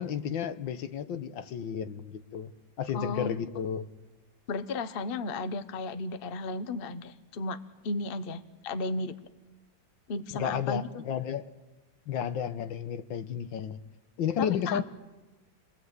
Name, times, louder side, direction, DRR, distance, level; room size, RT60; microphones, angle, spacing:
voice 1, 0.0-2.5 2.8-3.9 10.3-11.5 12.1-13.8 14.2-14.8, left 8 dB, 80° left, 11 dB, 1.8 m, -32 dB
voice 2, 2.9-3.4 4.5-7.6 7.8-9.1 10.1-11.0 14.4-14.8, left 3 dB, 40° left, 11 dB, 1.0 m, -34 dB
28.5 x 21.0 x 8.1 m, 1.2 s
omnidirectional pair, 2.1 m